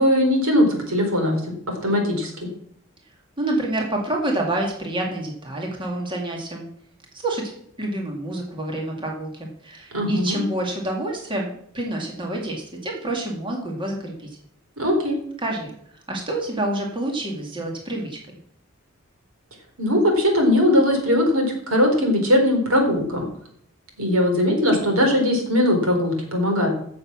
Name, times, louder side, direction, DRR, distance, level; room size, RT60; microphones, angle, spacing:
voice 1, 0.0-1.4 1.8-2.5 9.9-10.4 14.8-15.2 19.8-23.2 24.0-26.7, left 1 dB, 85° right, 3 dB, 4.1 m, -20 dB
voice 2, 3.4-6.7 7.1-7.5 7.8-14.3 15.4-15.7 16.1-18.2, right 1 dB, 25° right, 0 dB, 2.3 m, -28 dB
14.5 x 6.9 x 6.2 m, 0.67 s
head